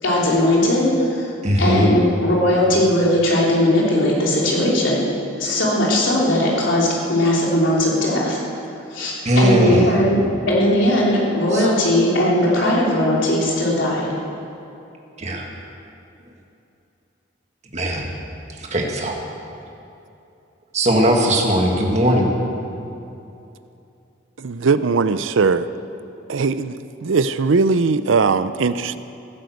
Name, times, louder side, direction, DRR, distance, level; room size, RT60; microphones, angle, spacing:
voice 1, 0.0-1.3 1.6-5.0 5.4-8.4 8.9-10.2 10.5-14.1, left 1 dB, 75° left, -4 dB, 3.5 m, -18 dB
voice 2, 1.4-1.9 9.3-10.0 11.5-11.7 15.2-15.4 17.7-18.1 18.6-19.2 20.7-22.3, equal, 35° right, 0 dB, 1.8 m, -18 dB
voice 3, 24.4-25.7 26.3-29.0, right 4 dB, 85° right, 13 dB, 0.5 m, -19 dB
16.5 x 9.4 x 7.9 m, 2.8 s
head